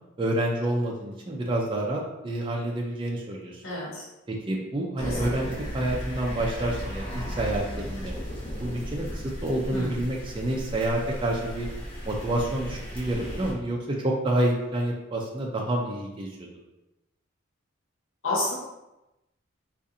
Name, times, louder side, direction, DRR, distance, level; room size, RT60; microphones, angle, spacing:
voice 1, 0.2-3.6 4.3-8.1 8.6-11.7 12.0-16.5, right 1 dB, 25° right, -1 dB, 0.4 m, -28 dB
voice 2, 3.6-4.0 5.0-5.2 9.7-9.9 18.2-18.5, left 2 dB, 75° left, -6 dB, 0.9 m, -29 dB
sound 1, 5.0-13.5, equal, 25° left, 0.8 m, -35 dB
3.7 x 2.5 x 2.6 m, 0.97 s
head